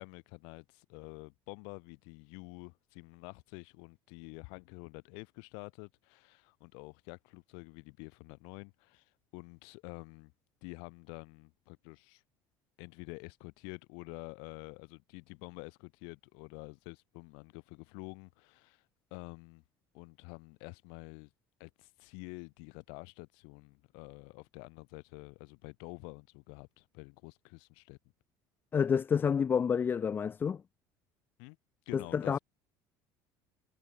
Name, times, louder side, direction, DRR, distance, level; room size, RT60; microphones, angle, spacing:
voice 1, 0.0-10.3 10.6-12.2 12.8-18.8 19.1-19.6 19.9-21.3 21.6-28.0 31.4-31.6 31.9-32.4, left 39 dB, 80° left, 4.6 m, -48 dB
voice 2, 28.7-30.6 31.9-32.4, left 7 dB, 25° left, 0.8 m, -29 dB
cardioid pair, 145°, 8 cm